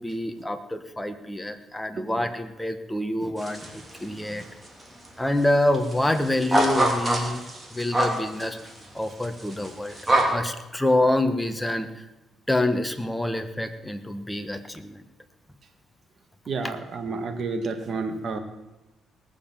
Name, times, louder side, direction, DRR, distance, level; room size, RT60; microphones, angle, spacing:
voice 1, 0.0-4.4 5.2-7.4 7.7-8.6 8.9-10.0 10.3-12.1 12.5-15.0, left 1 dB, 5° left, 8 dB, 1.2 m, -26 dB
sound 1, 3.4-4.0 4.3-5.1 5.3-5.4 5.7-10.2, right 1 dB, 20° right, 3.1 m, -25 dB
voice 2, 16.5-18.4, right 4 dB, 50° right, 7 dB, 1.8 m, -30 dB
18.5 x 7.1 x 7.4 m, 1.0 s
cardioid pair, 90°, 0 cm